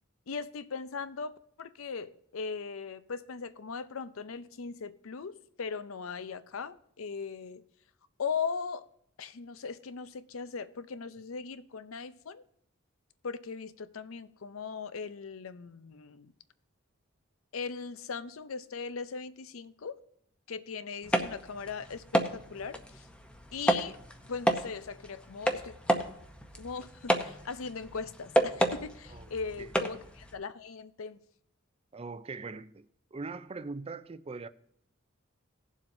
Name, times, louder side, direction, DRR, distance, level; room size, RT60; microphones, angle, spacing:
voice 1, 0.3-7.6 8.2-8.8 9.2-12.4 13.2-16.3 17.5-20.0 20.5-23.0 23.5-24.0 24.3-25.7 26.5-31.2, left 5 dB, 80° left, 0.6 m, -39 dB
sound 1, 21.0-30.3, equal, 5° left, 0.7 m, -32 dB
voice 2, 31.9-32.9 33.1-34.5, right 4 dB, 30° right, 0.4 m, -41 dB
18.0 x 7.3 x 2.6 m
head